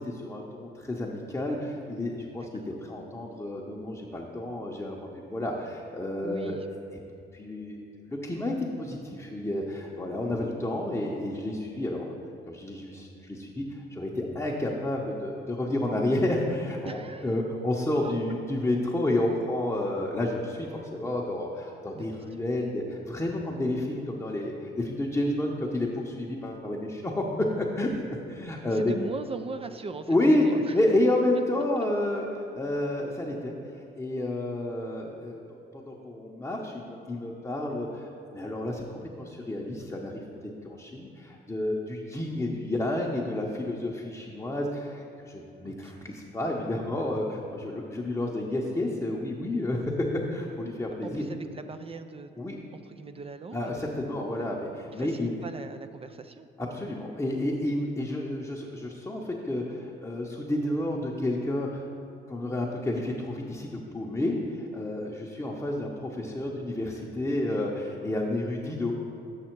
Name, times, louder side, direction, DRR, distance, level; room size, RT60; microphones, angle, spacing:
voice 1, 0.0-2.5 2.8-6.6 7.3-7.8 8.1-12.1 12.5-28.9 30.1-33.5 33.9-35.4 35.9-38.8 39.2-40.1 40.6-49.9 50.3-51.2 52.4-52.6 53.5-55.3 56.6-61.8 62.3-68.9, left 1 dB, 10° left, -3 dB, 0.8 m, -30 dB
voice 2, 6.2-6.7 16.8-17.3 18.0-18.1 21.9-22.4 28.7-30.2 30.4-30.7 45.6-46.1 51.0-52.3 52.7-53.7 54.9-56.5, right 4 dB, 30° right, 9 dB, 0.4 m, -40 dB
7.5 x 6.1 x 4.5 m, 2.7 s
cardioid pair, 90°, 20 cm